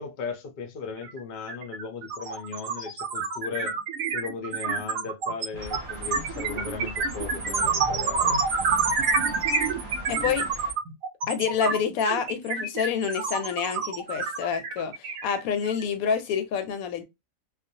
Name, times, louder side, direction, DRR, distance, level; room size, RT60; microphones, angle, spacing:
voice 1, 0.0-3.8 4.1-8.4, left 5 dB, 55° left, 0.6 m, -37 dB
sound 1, 1.0-1.2 1.5-15.8, right 4 dB, 75° right, 1.0 m, -28 dB
sound 2, 5.5-10.7, equal, 40° right, 0.9 m, -39 dB
voice 2, 10.1-10.5 11.3-17.0, left 7 dB, 80° left, 1.0 m, -28 dB
2.4 x 2.1 x 2.6 m
omnidirectional pair, 1.5 m